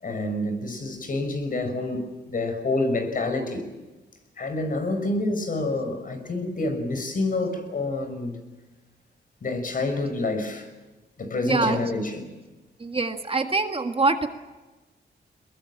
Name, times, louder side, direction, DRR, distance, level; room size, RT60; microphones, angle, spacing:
voice 1, 0.0-3.7 4.4-8.4 9.4-10.7 11.2-12.2, left 2 dB, 50° left, 5.8 m, -28 dB
voice 2, 11.4-11.8 12.8-14.3, right 3 dB, 30° right, 1.8 m, -24 dB
23.0 x 21.5 x 8.8 m
wide cardioid pair, 105°, 18 cm